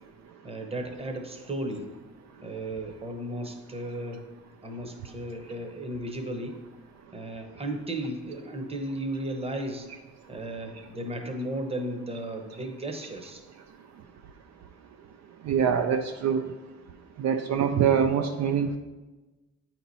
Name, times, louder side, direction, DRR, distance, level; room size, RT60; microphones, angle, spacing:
voice 1, 0.4-1.9 2.4-4.2 4.6-6.6 7.1-9.9 10.3-13.4, right 1 dB, 20° right, 4 dB, 0.9 m, -35 dB
voice 2, 15.5-16.4 17.2-18.8, right 7 dB, 65° right, 6 dB, 0.5 m, -24 dB
8.8 x 3.0 x 4.0 m, 1.2 s
cardioid pair, 90°, 30 cm